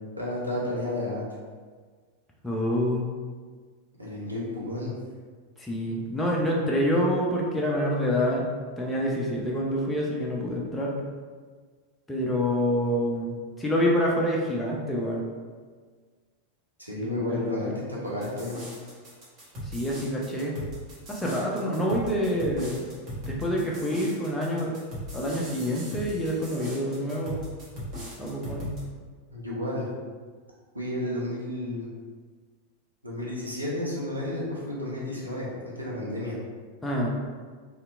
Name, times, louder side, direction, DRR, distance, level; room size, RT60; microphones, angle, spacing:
voice 1, 0.2-1.2 4.0-4.9 16.8-18.6 29.3-29.9 30.7-31.9 33.0-35.5 35.8-36.4, left 1 dB, 85° right, -5 dB, 0.6 m, -31 dB
voice 2, 2.4-3.1 5.6-8.5 8.8-11.0 12.1-13.3 13.6-15.2 17.0-17.8 19.7-20.5 21.1-22.8 23.2-24.7 25.1-27.4 28.2-28.7 36.8-37.1, equal, 5° left, -4 dB, 0.4 m, -27 dB
sound 1, 18.2-28.8, equal, 35° right, 0.9 m, -39 dB
2.7 x 2.1 x 2.4 m, 1.5 s
figure-of-eight pair, 90°, 0 cm